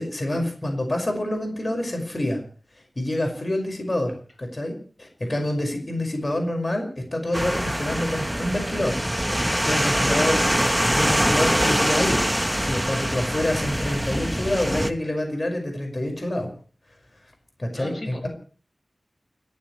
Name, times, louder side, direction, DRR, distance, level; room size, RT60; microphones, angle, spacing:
voice 1, 0.0-2.4 3.0-9.1 9.6-12.3 12.5-16.5 17.6-18.2, left 1 dB, 35° left, 3 dB, 5.7 m, -27 dB
sound 1, 7.3-14.9, equal, 5° right, 1.3 m, -23 dB
voice 2, 17.7-18.3, left 1 dB, 50° left, 4 dB, 5.5 m, -37 dB
30.0 x 14.5 x 3.3 m, 0.42 s
wide cardioid pair, 80°, 0 cm